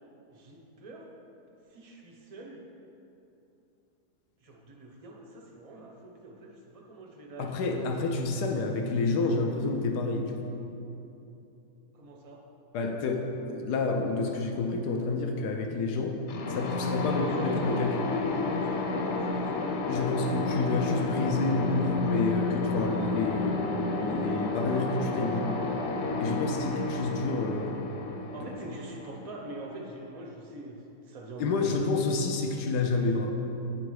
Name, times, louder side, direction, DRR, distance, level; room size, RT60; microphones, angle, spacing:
voice 1, 0.3-1.1 1.7-2.6 4.4-7.9 11.9-12.4 17.1-17.6 17.9-19.7 28.3-31.9, right 1 dB, 55° right, 0 dB, 0.4 m, -43 dB
voice 2, 7.4-10.5 12.7-16.2 16.5-18.1 19.9-25.6 26.2-27.9 31.4-33.3, left 3 dB, 85° left, 3 dB, 1.3 m, -29 dB
sound 1, 16.3-30.0, left 3 dB, 70° left, 0.7 m, -31 dB
9.2 x 3.9 x 4.7 m, 2.9 s
omnidirectional pair, 1.7 m